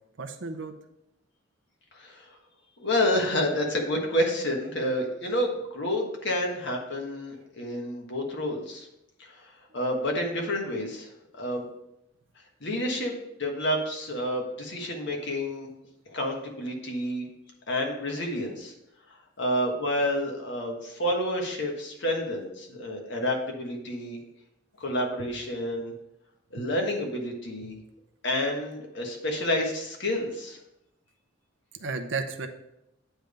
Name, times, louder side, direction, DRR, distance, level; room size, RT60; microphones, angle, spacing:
voice 1, 0.2-0.7 25.2-25.3 26.6-26.7 27.6-27.7 31.8-32.5, right 4 dB, 65° right, 6 dB, 0.7 m, -33 dB
voice 2, 1.9-2.4 2.8-8.9 9.2-11.7 12.6-15.7 16.1-17.2 17.7-18.7 19.4-24.2 24.8-25.9 26.5-27.7 28.2-30.6, left 1 dB, 60° left, 1 dB, 1.4 m, -29 dB
9.0 x 3.5 x 5.2 m, 0.84 s
head